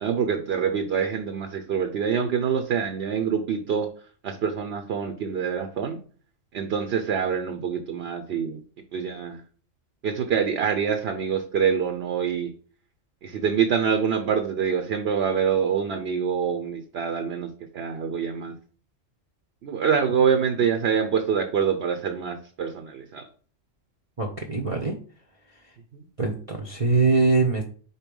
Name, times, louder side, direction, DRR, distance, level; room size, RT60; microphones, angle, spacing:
voice 1, 0.0-3.9 4.2-6.0 6.5-8.6 8.9-9.4 10.0-12.5 13.2-18.6 19.6-23.2, right 7 dB, 60° right, 7 dB, 0.9 m, -25 dB
voice 2, 24.2-24.9 26.2-27.7, right 3 dB, 35° right, 1 dB, 0.7 m, -22 dB
4.5 x 4.1 x 5.3 m, 0.42 s
omnidirectional pair, 1.3 m